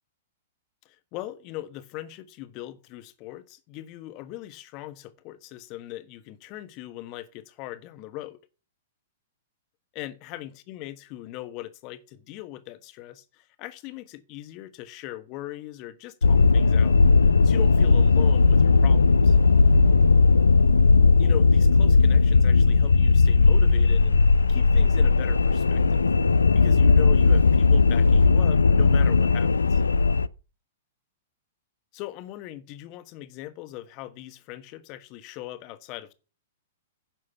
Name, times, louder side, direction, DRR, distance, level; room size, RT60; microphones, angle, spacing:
voice 1, 0.8-8.4 9.9-17.0 17.4-19.4 21.2-24.2 24.5-26.0 26.5-29.8 31.9-36.1, left 15 dB, 40° left, 1.3 m, -39 dB
sound 1, 16.2-30.3, left 4 dB, 80° left, 0.5 m, -18 dB
10.5 x 6.3 x 7.1 m
figure-of-eight pair, 105°, 0 cm